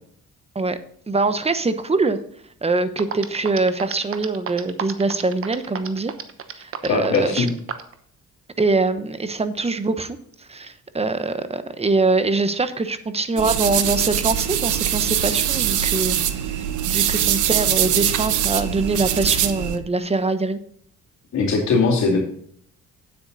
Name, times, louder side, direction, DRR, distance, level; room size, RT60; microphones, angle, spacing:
voice 1, 1.1-2.2 2.6-6.1 6.5-7.5 8.6-10.2 10.5-20.6, right 3 dB, 20° right, 11 dB, 0.9 m, -23 dB
sound 1, 3.0-7.9, right 7 dB, 45° right, 1.1 m, -31 dB
voice 2, 6.9-7.5 21.3-22.2, left 4 dB, 60° left, -7 dB, 2.8 m, -19 dB
sound 2, 13.4-19.8, right 10 dB, 75° right, 1.0 m, -22 dB
9.1 x 8.3 x 4.0 m, 0.65 s
cardioid pair, 90°, 30 cm